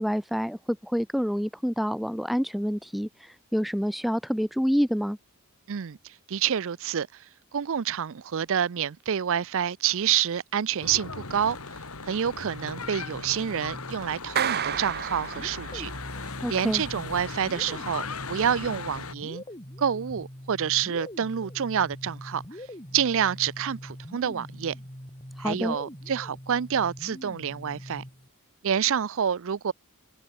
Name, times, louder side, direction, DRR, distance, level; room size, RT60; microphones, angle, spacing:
voice 1, 0.0-5.2 16.4-16.8 25.4-25.8, equal, ahead, 1.2 m, -27 dB
voice 2, 6.3-7.1 7.5-11.6 12.0-15.9 16.5-19.4 19.8-22.4 22.9-24.7 25.4-28.0 28.6-29.7, right 8 dB, 60° right, 0.5 m, -28 dB
Church bell / Traffic noise roadway noise, 10.8-19.1, left 4 dB, 75° left, 3.5 m, -38 dB
sound 1, 12.3-14.4 15.4-28.3, equal, 20° left, 5.2 m, -43 dB
Clapping, 14.4-16.1, right 8 dB, 45° right, 0.9 m, -30 dB
head